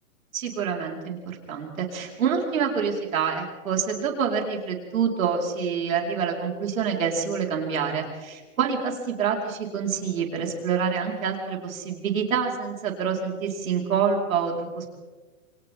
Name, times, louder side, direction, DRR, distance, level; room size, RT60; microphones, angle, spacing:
voice 1, 0.3-15.0, right 6 dB, 70° right, 0 dB, 5.0 m, -27 dB
29.0 x 24.0 x 3.8 m, 1.2 s
hypercardioid pair, 170°, 42 cm